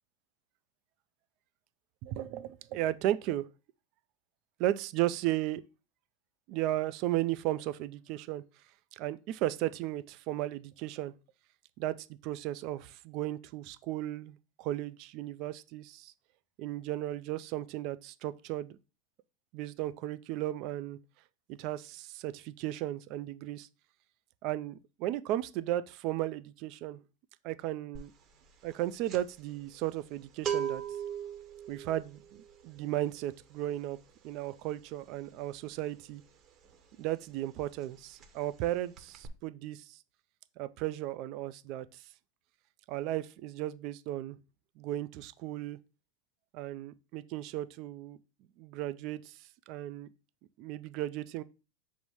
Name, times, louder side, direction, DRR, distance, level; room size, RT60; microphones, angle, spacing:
voice 1, 2.0-3.5 4.6-5.6 6.5-8.4 8.9-11.1 11.8-12.0 12.2-16.1 16.6-18.8 19.5-21.0 21.5-23.7 24.4-27.0 27.4-28.1 28.6-30.8 31.7-34.0 34.2-36.2 37.0-40.0 40.6-41.9 42.9-44.4 44.8-45.8 46.5-48.2 48.6-49.4 49.7-50.1 50.6-51.4, right 14 dB, 55° right, 0.4 m, -35 dB
sound 1, 27.9-28.2 28.5-37.1 37.3-37.6 37.8-38.7 38.9-39.3, right 8 dB, 35° right, 0.9 m, -39 dB
5.4 x 2.1 x 4.7 m
hypercardioid pair, 115°, 0 cm